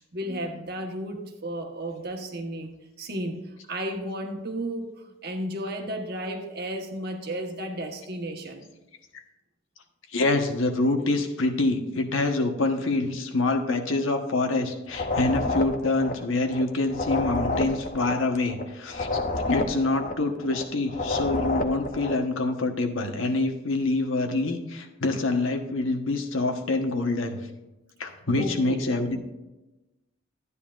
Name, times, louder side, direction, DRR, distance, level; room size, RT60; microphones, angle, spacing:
voice 1, 0.1-8.7 28.4-28.8, right 1 dB, 50° right, 3 dB, 1.3 m, -33 dB
voice 2, 10.1-19.2 19.5-27.4 28.0-29.2, left 2 dB, 80° left, 5 dB, 1.2 m, -26 dB
sound 1, 14.9-22.3, left 2 dB, 40° left, 0.8 m, -29 dB
12.5 x 9.7 x 2.5 m, 1.0 s
head